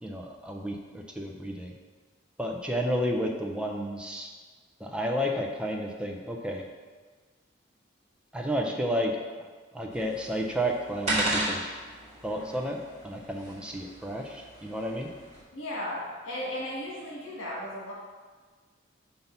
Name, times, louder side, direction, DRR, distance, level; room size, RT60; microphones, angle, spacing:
voice 1, 0.0-1.8 2.4-4.3 4.8-6.6 8.3-9.2 9.7-11.8 12.2-12.8 13.0-15.1, equal, 5° right, 0 dB, 0.6 m, -31 dB
sound 1, 9.9-15.4, right 1 dB, 35° right, 1.8 m, -35 dB
voice 2, 15.5-17.9, left 1 dB, 90° left, -5 dB, 1.9 m, -35 dB
5.7 x 5.6 x 4.0 m, 1.5 s
head